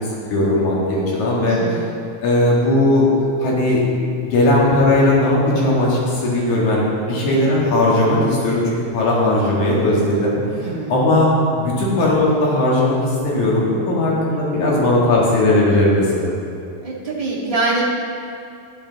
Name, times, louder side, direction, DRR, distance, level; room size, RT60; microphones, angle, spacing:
voice 1, 0.3-1.6 2.2-3.1 3.4-3.8 4.2-11.3 11.6-16.3, left 1 dB, 65° left, -5 dB, 3.2 m, -17 dB
voice 2, 1.5-1.9 10.6-11.0 16.8-17.8, right 3 dB, 20° right, -6 dB, 1.1 m, -24 dB
12.0 x 10.0 x 4.1 m, 2.6 s
omnidirectional pair, 3.7 m